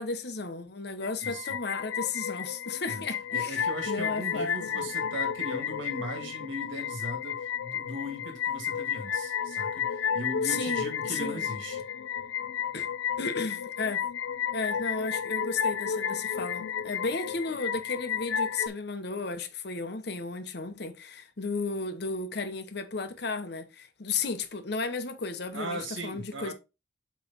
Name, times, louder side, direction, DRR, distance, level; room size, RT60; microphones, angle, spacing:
voice 1, 0.0-4.9 10.4-11.5 12.7-12.9 13.2-14.0 14.5-26.5, left 4 dB, 55° left, 0.8 m, -34 dB
sound 1, 1.0-18.7, left 8 dB, 90° left, 0.4 m, -32 dB
voice 2, 3.3-11.8 25.5-26.5, right 1 dB, 85° right, 1.8 m, -38 dB
7.9 x 3.2 x 4.0 m
head